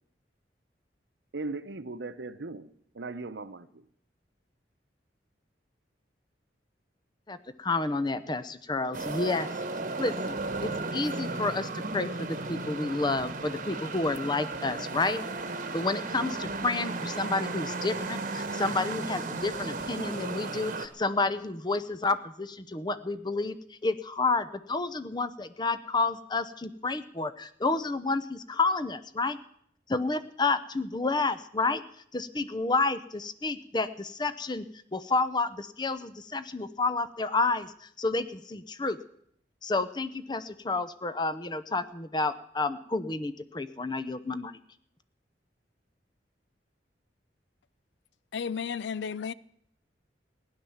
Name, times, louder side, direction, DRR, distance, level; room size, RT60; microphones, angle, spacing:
voice 1, 1.3-3.9, right 3 dB, 75° right, 0.9 m, -38 dB
voice 2, 7.3-9.5 10.0-15.2 15.7-23.6 23.8-29.4 29.9-31.8 32.1-34.6 34.9-39.0 39.6-44.6, left 3 dB, 25° left, 0.7 m, -30 dB
sound 1, 8.9-20.9, right 3 dB, 45° right, 1.2 m, -35 dB
voice 3, 48.3-49.3, left 6 dB, 80° left, 0.5 m, -33 dB
16.0 x 10.5 x 7.1 m
head